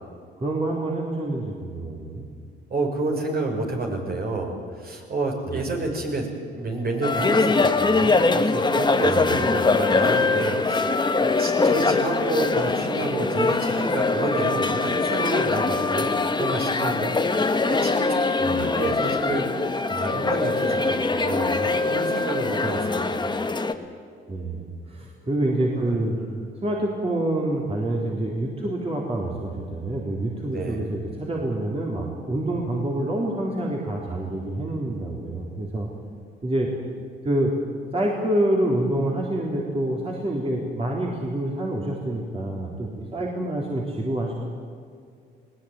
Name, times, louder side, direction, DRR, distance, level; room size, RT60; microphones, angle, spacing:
voice 1, 0.4-2.3 5.5-5.7 9.0-9.4 18.4-18.7 24.3-26.1 26.6-35.9 36.4-36.7 37.2-37.5 37.9-44.3, right 1 dB, 30° right, -2 dB, 3.8 m, -27 dB
voice 2, 2.7-23.5 25.4-26.4 30.5-30.9, right 2 dB, 50° right, 1 dB, 6.1 m, -30 dB
sound 1, 7.0-23.7, left 3 dB, 20° left, 1.5 m, -23 dB
20.0 x 19.0 x 9.1 m, 2.2 s
cardioid pair, 90°, 20 cm